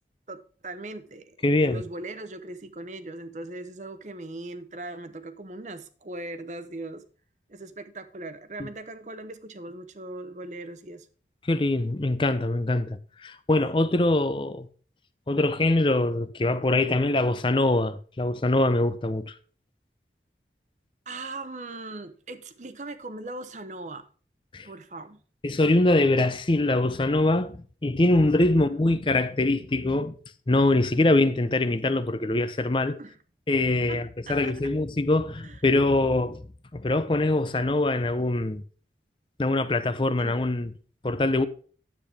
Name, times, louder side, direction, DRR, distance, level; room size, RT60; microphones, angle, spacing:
voice 1, 0.3-7.0 7.5-11.1 21.1-24.1 24.6-25.2 28.4-29.1 33.0-33.2 33.9-34.0 34.3-34.7 35.4-35.6 40.2-40.4, right 2 dB, 40° right, 0.8 m, -39 dB
voice 2, 1.4-1.8 8.6-8.7 11.4-14.7 15.3-19.3 24.5-24.7 25.4-30.1 30.5-33.0 33.5-36.4 36.7-38.6 39.4-40.7 41.0-41.5, left 2 dB, 30° left, 0.5 m, -23 dB
10.0 x 8.5 x 3.5 m
head